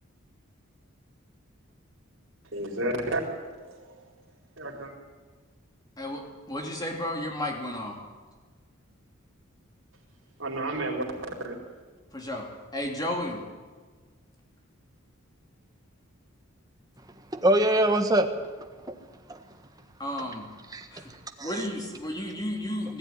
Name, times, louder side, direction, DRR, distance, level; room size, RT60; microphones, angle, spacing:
voice 1, 2.5-3.3 3.6-4.0 4.6-4.9 10.4-11.0 11.4-11.5, right 1 dB, 60° right, 0 dB, 4.4 m, -31 dB
voice 2, 6.0-8.0 12.1-13.4 20.0-20.5 20.9-21.1 21.4-23.0, left 1 dB, 20° left, 1 dB, 3.2 m, -33 dB
voice 3, 17.3-18.9 19.3-19.4 20.7-21.5, right 1 dB, 15° right, 6 dB, 1.4 m, -25 dB
20.5 x 13.5 x 9.7 m, 1.4 s
head